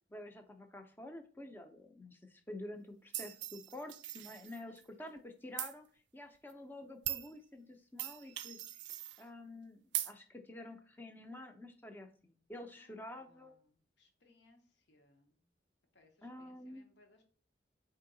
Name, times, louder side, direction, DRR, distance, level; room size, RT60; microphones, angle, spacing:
voice 1, 0.1-8.8 9.2-13.5 16.2-16.9, left 1 dB, 10° left, 5 dB, 0.5 m, -49 dB
sound 1, 3.1-4.8 5.6-5.7 6.5-6.6 7.1-7.3 8.0-9.2 9.9-10.1, right 13 dB, 75° right, 0.4 m, -40 dB
voice 2, 4.6-5.2 12.8-15.4 15.9-17.2, left 2 dB, 75° left, 3 dB, 1.0 m, -69 dB
4.5 x 2.7 x 3.8 m, 0.42 s
head